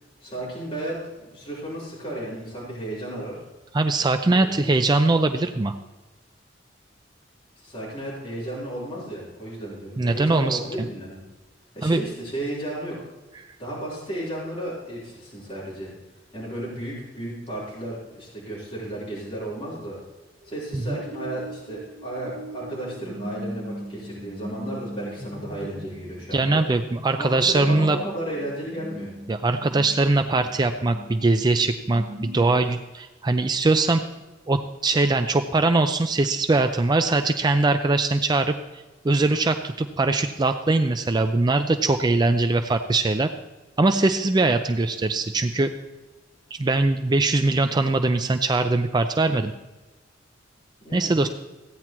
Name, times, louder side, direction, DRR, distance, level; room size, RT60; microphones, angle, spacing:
voice 1, 0.2-1.0 1.2-3.4 4.3-4.8 7.6-11.2 11.7-12.9 13.6-15.9 16.3-20.0 20.4-26.6 27.2-29.2 50.8-51.2, right 1 dB, 35° left, -8 dB, 3.8 m, -33 dB
voice 2, 3.7-5.8 10.0-10.6 11.8-12.0 20.7-21.0 26.3-28.0 29.3-34.0 34.5-38.5 39.0-43.3 43.8-45.7 46.6-49.5 50.9-51.3, right 2 dB, 25° right, 7 dB, 0.4 m, -21 dB
sound 1, 20.4-32.7, equal, 50° right, 1.6 m, -40 dB
15.5 x 9.6 x 3.0 m, 1.1 s
head